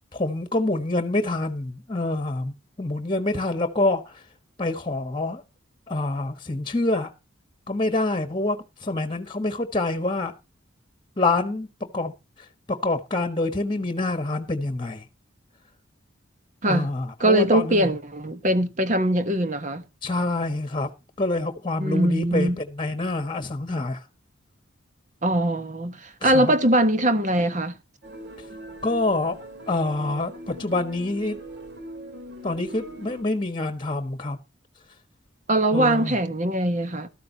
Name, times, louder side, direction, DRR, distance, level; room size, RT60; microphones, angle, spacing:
voice 1, 0.1-4.2 4.6-5.4 5.9-7.1 7.7-10.3 11.2-12.1 12.7-15.0 16.6-17.9 20.0-20.9 21.2-24.0 26.2-26.5 28.8-29.4 29.7-31.4 32.4-34.4 35.7-36.1, left 2 dB, 25° left, 1.3 m, -26 dB
voice 2, 17.2-19.8 21.8-22.6 25.2-27.8 35.5-37.1, right 1 dB, 35° right, 1.1 m, -22 dB
sound 1, 28.0-33.2, right 1 dB, 55° right, 3.5 m, -41 dB
13.5 x 13.0 x 2.9 m
head